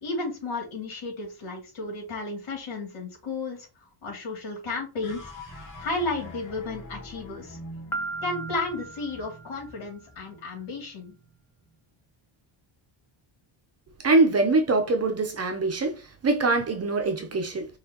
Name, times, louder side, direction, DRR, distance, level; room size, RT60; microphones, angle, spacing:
voice 1, 0.0-3.7 4.0-7.6 8.2-11.1, left 3 dB, 75° left, 2.7 m, -33 dB
sound 1, 5.0-11.4, equal, 40° left, 2.2 m, -44 dB
Piano, 7.9-9.8, right 3 dB, 5° left, 0.6 m, -36 dB
voice 2, 14.0-17.7, right 3 dB, 30° right, 0.7 m, -23 dB
5.7 x 3.1 x 2.9 m
cardioid pair, 150°, 49 cm